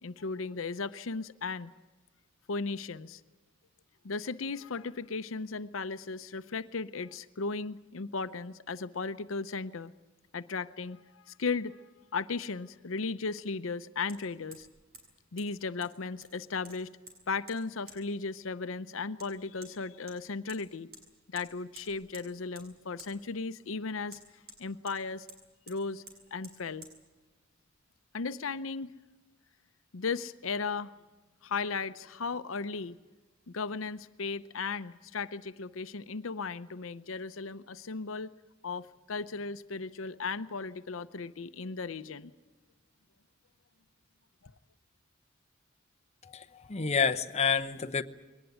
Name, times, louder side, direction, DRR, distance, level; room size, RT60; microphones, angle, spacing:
voice 1, 0.0-1.7 2.5-3.2 4.0-9.9 10.3-11.8 12.1-14.7 15.3-16.9 17.3-20.9 21.3-24.2 24.6-25.3 25.7-26.0 26.3-26.9 28.1-28.9 29.9-30.9 31.4-33.0 33.5-38.3 38.6-42.3, left 4 dB, 85° left, 13 dB, 0.7 m, -36 dB
Hammer, 14.1-14.2 14.5-14.7 14.9-15.1 15.4-15.5 15.8-16.4 16.6-17.2 17.5-17.6 17.9-18.0 19.2-19.3 19.6-19.7 20.1-20.6 20.9-21.0 21.3-21.5 21.7-22.3 22.5-22.7 23.0-23.1 24.1-25.0 25.3-25.4 25.7-25.8 26.1-26.2 26.4-26.6 26.8-26.9, right 2 dB, 50° right, 6.3 m, -50 dB
voice 2, 46.2-48.0, left 6 dB, 35° left, 7 dB, 0.9 m, -29 dB
22.0 x 19.0 x 9.4 m, 1.2 s
head